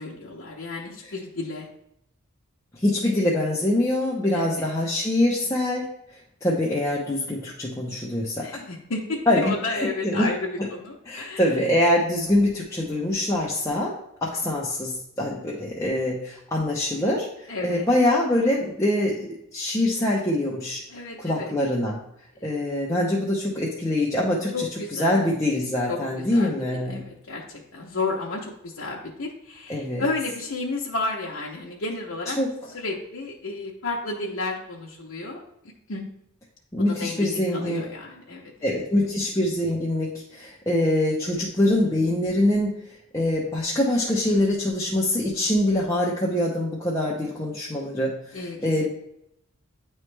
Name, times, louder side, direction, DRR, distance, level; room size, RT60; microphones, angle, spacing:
voice 1, 0.0-1.7 4.3-4.7 8.4-11.5 17.5-17.9 20.9-21.5 22.4-22.6 24.5-25.2 25.9-26.5 26.8-27.4 27.7-32.4 32.7-35.4 35.9-36.1 36.9-38.5 48.3-48.9, left 3 dB, 60° left, -3 dB, 0.8 m, -32 dB
voice 2, 2.7-5.9 6.4-8.6 9.3-10.3 10.6-10.7 11.1-13.9 14.2-20.8 21.2-22.0 22.4-27.1 29.7-30.0 32.4-32.7 36.7-37.8 38.6-42.8 43.1-48.9, left 1 dB, 15° left, -5 dB, 0.7 m, -24 dB
9.5 x 3.2 x 3.3 m, 0.77 s
head